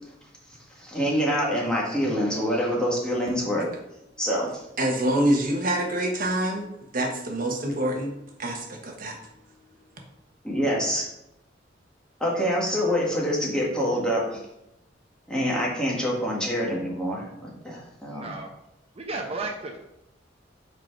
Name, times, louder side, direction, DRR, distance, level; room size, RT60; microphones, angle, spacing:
voice 1, 0.8-3.6 4.2-4.5 10.4-11.0 12.2-14.4 15.3-18.3, equal, 5° left, -4 dB, 1.6 m, -26 dB
voice 2, 4.8-6.7 6.9-8.1 8.4-9.2, right 1 dB, 50° right, 2 dB, 1.1 m, -26 dB
voice 3, 18.1-18.5 19.0-19.8, right 3 dB, 30° right, 1 dB, 0.7 m, -33 dB
5.1 x 4.5 x 4.5 m, 0.84 s
head